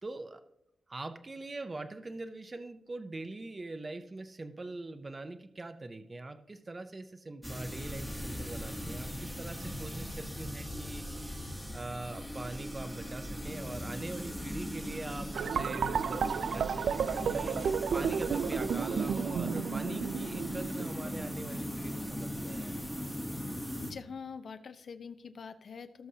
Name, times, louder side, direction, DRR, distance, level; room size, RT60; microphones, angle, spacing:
voice 1, 0.0-0.4 0.9-22.8, right 2 dB, 25° right, 9 dB, 0.5 m, -43 dB
sound 1, 7.4-23.9, equal, ahead, 1.0 m, -39 dB
sound 2, 15.3-21.2, right 7 dB, 75° right, 0.3 m, -32 dB
voice 2, 23.8-26.1, left 6 dB, 55° left, 10 dB, 0.7 m, -45 dB
18.0 x 6.2 x 2.8 m, 0.83 s
wide cardioid pair, 145°, 0 cm